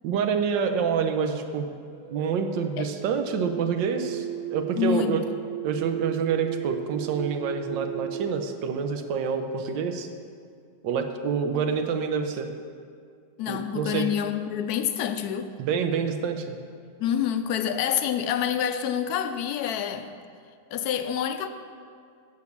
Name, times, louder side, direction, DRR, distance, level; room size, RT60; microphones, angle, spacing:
voice 1, 0.0-1.7 2.1-5.2 5.6-10.1 10.8-12.5 13.5-14.1 15.6-16.5, right 6 dB, 85° right, 6 dB, 1.4 m, -27 dB
sound 1, 1.9-9.3, right 11 dB, 60° right, 1.2 m, -36 dB
voice 2, 4.8-5.2 13.4-15.5 17.0-20.1 20.7-21.5, left 9 dB, 70° left, 9 dB, 0.9 m, -27 dB
8.3 x 6.5 x 7.0 m, 2.2 s
omnidirectional pair, 2.0 m